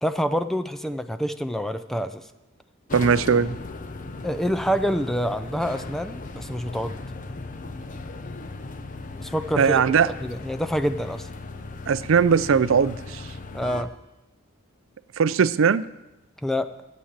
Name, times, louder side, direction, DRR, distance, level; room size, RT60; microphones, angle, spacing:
voice 1, 0.0-2.2 4.2-7.0 9.2-9.8 10.1-11.3 13.5-13.9 16.4-16.7, equal, ahead, 9 dB, 0.5 m, -27 dB
sound 1, 2.9-13.8, left 3 dB, 40° left, 0.8 m, -37 dB
voice 2, 2.9-3.6 9.6-10.1 11.9-13.2 15.2-15.8, right 6 dB, 70° right, 16 dB, 0.4 m, -19 dB
13.0 x 8.6 x 7.3 m, 0.97 s
head